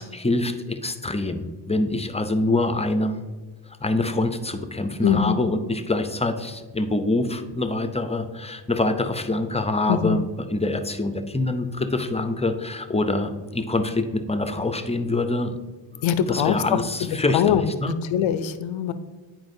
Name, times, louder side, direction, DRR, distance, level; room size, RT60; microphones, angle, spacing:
voice 1, 0.0-3.2 3.7-10.3 10.5-15.6 15.9-17.9, left 2 dB, 15° left, 8 dB, 0.6 m, -25 dB
voice 2, 5.0-5.4 9.9-10.2 16.0-16.8 17.3-18.9, left 9 dB, 85° left, 12 dB, 0.6 m, -22 dB
9.4 x 4.5 x 2.6 m, 1.3 s
cardioid pair, 60°, 45 cm